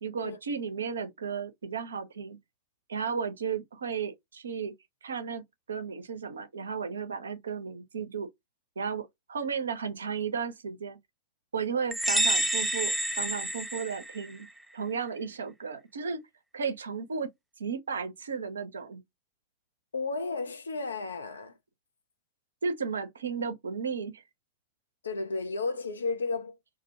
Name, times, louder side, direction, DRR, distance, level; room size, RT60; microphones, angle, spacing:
voice 1, 0.0-2.4 2.9-4.7 5.0-5.4 5.7-8.3 8.8-11.0 11.5-14.5 14.7-16.2 16.5-17.3 17.6-19.0 22.6-24.2, right 6 dB, 70° right, 0.5 m, -34 dB
sound 1, 11.9-14.5, right 1 dB, 5° right, 0.3 m, -28 dB
voice 2, 19.9-21.6 25.0-26.8, left 3 dB, 75° left, 0.5 m, -33 dB
2.3 x 2.1 x 2.7 m
figure-of-eight pair, 90°, 0 cm